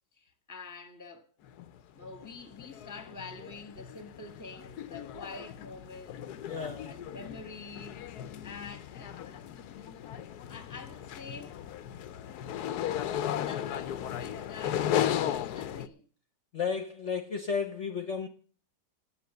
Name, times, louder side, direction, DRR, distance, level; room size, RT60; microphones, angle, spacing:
voice 1, 0.1-1.3 1.9-6.3 6.8-8.1 8.4-9.5 10.5-11.6 13.3-16.1, left 4 dB, 10° left, 1.4 m, -46 dB
sound 1, 1.5-1.8 2.0-15.9, left 10 dB, 70° left, 1.2 m, -36 dB
voice 2, 6.4-7.0 16.5-18.3, left 6 dB, 45° left, 1.2 m, -33 dB
9.9 x 8.5 x 7.8 m
omnidirectional pair, 1.9 m